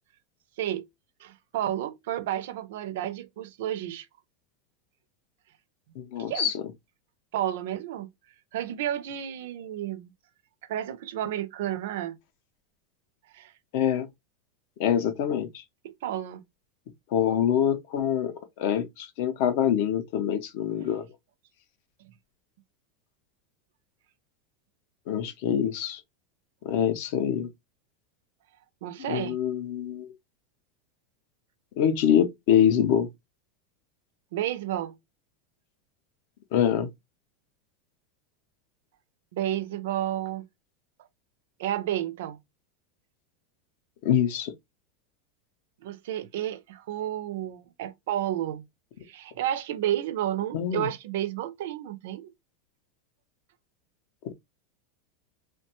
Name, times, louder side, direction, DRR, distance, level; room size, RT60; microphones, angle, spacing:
voice 1, 1.2-4.1 6.3-6.5 7.3-8.1 8.5-10.1 10.7-12.2 13.3-13.5 15.8-16.4 28.8-29.4 34.3-35.0 39.3-40.4 41.6-42.4 45.8-48.7 49.1-52.3, right 12 dB, 65° right, 0.4 m, -31 dB
voice 2, 6.0-6.6 13.7-14.1 14.8-15.6 17.1-21.1 25.1-26.0 26.6-27.5 29.1-30.1 31.8-33.1 36.5-36.9 44.0-44.5 50.5-50.9, left 9 dB, 50° left, 0.5 m, -25 dB
3.0 x 2.1 x 2.8 m
supercardioid pair, 175°, 0 cm